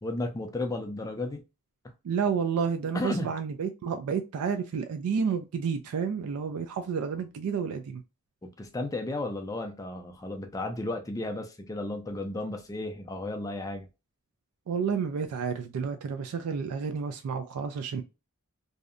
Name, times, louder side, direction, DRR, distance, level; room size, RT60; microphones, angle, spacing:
voice 1, 0.0-1.4 2.9-3.3 8.4-13.9, left 2 dB, 15° left, 0.3 m, -33 dB
voice 2, 2.0-8.0 14.7-18.0, right 6 dB, 90° right, 0.3 m, -30 dB
2.6 x 2.1 x 2.4 m
head